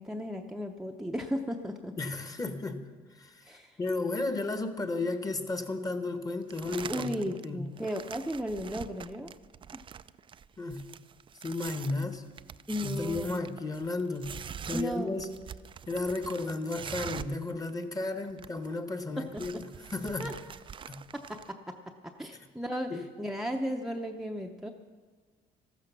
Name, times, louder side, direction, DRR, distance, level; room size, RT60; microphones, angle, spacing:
voice 1, 0.0-1.9 3.5-3.8 6.9-9.3 12.7-13.6 14.7-15.4 19.2-19.3 20.2-20.3 21.3-21.8 22.0-24.7, equal, ahead, 3 dB, 0.7 m, -35 dB
voice 2, 2.0-2.9 3.2-3.4 3.8-7.1 7.4-7.6 10.6-10.9 11.4-12.2 12.8-14.3 14.6-15.3 15.9-19.6 19.9-20.3 20.9-21.0 22.9-23.0, left 3 dB, 20° left, 9 dB, 1.2 m, -33 dB
sound 1, 6.5-7.4 7.8-17.4 17.7-17.8 18.0-18.7 19.0-21.5, right 8 dB, 30° right, 0.3 m, -44 dB
14.0 x 12.5 x 6.1 m, 1.5 s
cardioid pair, 110°, 17 cm